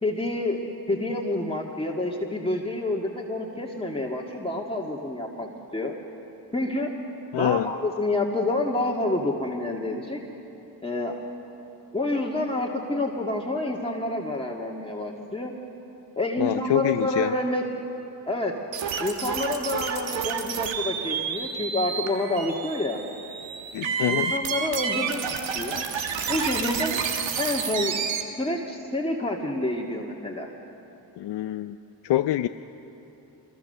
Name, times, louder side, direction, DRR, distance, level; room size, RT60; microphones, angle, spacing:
voice 1, 0.0-0.6 0.9-5.9 6.5-6.9 7.3-10.2 10.8-11.2 11.9-15.5 16.1-17.6 18.3-18.5 19.0-23.0 24.1-25.2 25.5-25.8 26.3-27.0 27.4-28.0 28.4-30.5, left 2 dB, 10° left, -1 dB, 2.0 m, -28 dB
voice 2, 7.3-7.7 16.4-17.3 23.7-24.3 31.2-31.8 32.0-32.5, left 13 dB, 65° left, 10 dB, 0.6 m, -25 dB
sound 1, 18.7-28.2, right 6 dB, 85° right, 1.6 m, -30 dB
25.0 x 22.0 x 6.8 m, 2.9 s
cardioid pair, 60°, 44 cm